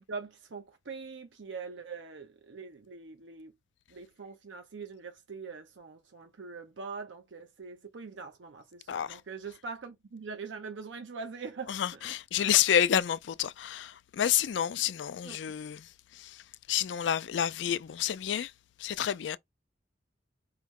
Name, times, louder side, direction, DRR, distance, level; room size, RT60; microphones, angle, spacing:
voice 1, 0.0-3.5 3.9-12.0 15.2-15.4, right 4 dB, 80° right, 0.7 m, -43 dB
voice 2, 8.9-9.2 11.7-16.4 16.7-18.5 18.8-19.4, left 9 dB, 70° left, 0.4 m, -29 dB
4.7 x 2.1 x 3.6 m
head